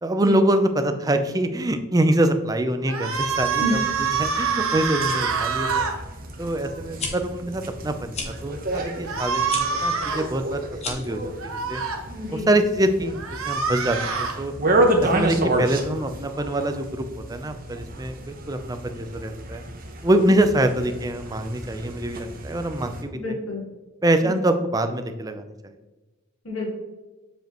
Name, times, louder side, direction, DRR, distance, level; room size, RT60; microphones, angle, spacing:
voice 1, 0.0-5.9 6.4-11.8 12.3-14.5 15.0-19.6 20.0-23.2 24.0-25.5, right 1 dB, 15° right, 8 dB, 0.4 m, -24 dB
sound 1, 2.9-5.9 9.1-10.3 11.4-12.0 13.1-14.4, right 5 dB, 75° right, 1.1 m, -25 dB
sound 2, 3.1-23.0, right 1 dB, 40° right, 0.8 m, -30 dB
sound 3, 7.0-7.1 8.1-8.3 9.4-9.6 10.7-11.1, left 4 dB, 30° left, 1.0 m, -31 dB
voice 2, 12.1-12.5 23.2-23.6 24.2-24.4 26.4-26.7, left 1 dB, 70° left, -4 dB, 2.0 m, -28 dB
7.7 x 5.1 x 3.0 m, 1.2 s
head